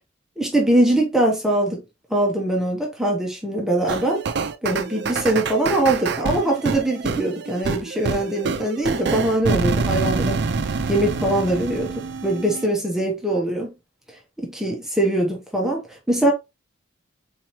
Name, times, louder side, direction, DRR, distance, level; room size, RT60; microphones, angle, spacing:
voice 1, 0.4-1.8 2.1-4.2 4.6-10.4 10.9-13.7 14.4-16.3, right 1 dB, ahead, 0.7 m, -22 dB
sound 1, 3.9-12.7, right 4 dB, 60° right, 0.4 m, -26 dB
4.0 x 2.9 x 3.0 m
head